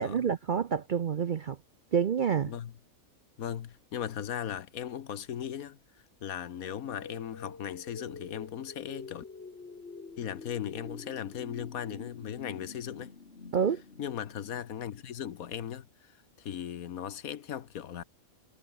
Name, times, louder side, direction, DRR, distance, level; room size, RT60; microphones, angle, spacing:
voice 1, 0.0-1.6 1.9-2.5 13.5-13.8, right 7 dB, 55° right, 0.6 m, -28 dB
voice 2, 3.4-5.8 6.2-9.2 10.2-13.1 14.0-18.0, left 9 dB, 85° left, 1.5 m, -38 dB
sound 1, 6.6-15.5, left 4 dB, 50° left, 2.4 m, -47 dB
omnidirectional pair, 1.5 m